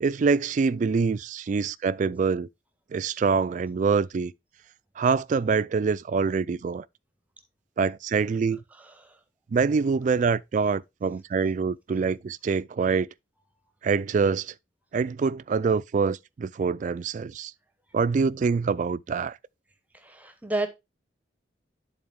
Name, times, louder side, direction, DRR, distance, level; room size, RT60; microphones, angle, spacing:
voice 1, 0.0-2.5 2.9-4.3 5.0-6.8 7.8-8.6 9.5-13.1 13.8-14.5 14.9-17.5 17.9-19.4, right 5 dB, 45° right, 0.3 m, -25 dB
voice 2, 20.1-20.7, right 2 dB, 10° right, 0.7 m, -29 dB
10.5 x 3.9 x 3.4 m
head